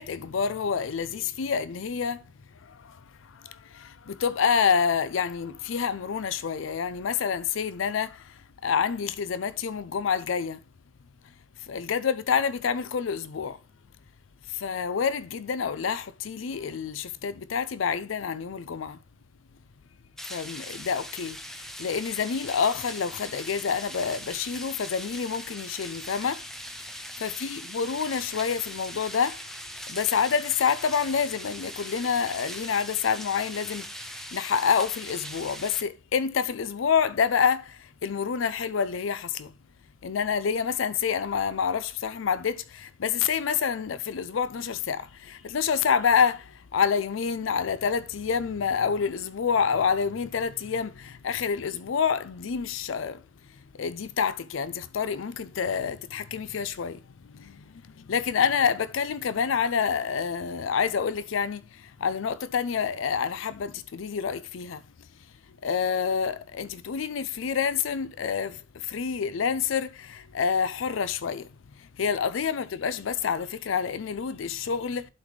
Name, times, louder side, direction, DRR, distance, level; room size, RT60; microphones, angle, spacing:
voice 1, 0.0-2.2 2.6-10.6 11.7-13.6 14.5-19.0 20.3-26.4 27.2-29.5 29.9-39.5 40.0-53.2 53.7-64.8 65.6-71.5 71.8-75.1, left 6 dB, 85° left, 0.5 m, -28 dB
sound 1, 20.2-35.8, equal, ahead, 0.7 m, -40 dB
11.5 x 4.0 x 3.2 m
head